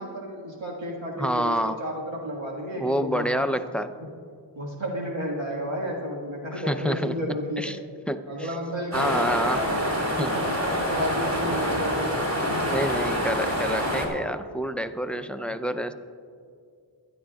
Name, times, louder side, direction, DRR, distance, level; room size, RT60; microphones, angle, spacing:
voice 1, 0.0-3.4 4.0-4.1 4.6-7.6 8.3-9.8 10.2-12.9, equal, 75° right, -3 dB, 1.8 m, -32 dB
voice 2, 1.2-1.8 2.8-3.9 6.7-7.8 8.1-8.5 8.9-9.6 10.2-10.4 12.7-15.9, equal, ahead, 9 dB, 0.5 m, -28 dB
sound 1, 8.9-14.1, equal, 35° right, 3.2 m, -26 dB
23.0 x 10.5 x 2.4 m, 2.2 s
wide cardioid pair, 55°, 47 cm